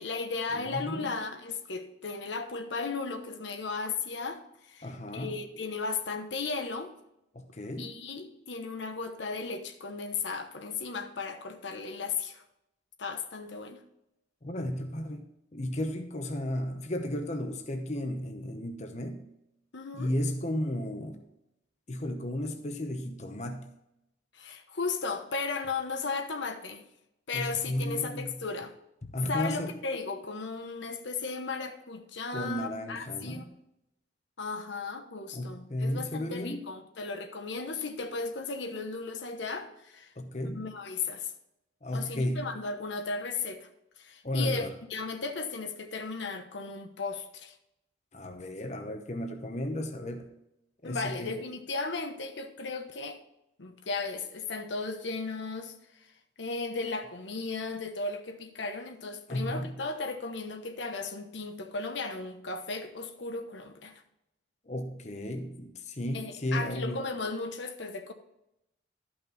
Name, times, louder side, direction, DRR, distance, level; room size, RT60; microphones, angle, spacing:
voice 1, 0.0-6.9 7.8-12.4 13.0-13.8 19.7-20.1 24.3-26.8 27.3-28.7 29.3-33.5 34.4-40.1 40.4-41.3 41.9-43.7 44.0-44.6 44.9-47.5 50.8-53.2 53.6-55.7 56.4-63.9 66.1-68.1, left 4 dB, 75° left, 1.0 m, -35 dB
voice 2, 0.5-1.1 4.8-5.4 7.3-8.0 14.4-19.3 19.9-21.2 21.9-23.7 27.3-28.5 29.1-29.7 32.3-33.4 35.3-36.7 40.2-40.7 41.8-42.6 44.2-44.7 48.1-50.3 50.8-51.4 59.3-59.8 64.7-67.0, left 1 dB, 35° left, 0.8 m, -34 dB
12.5 x 5.8 x 4.1 m
head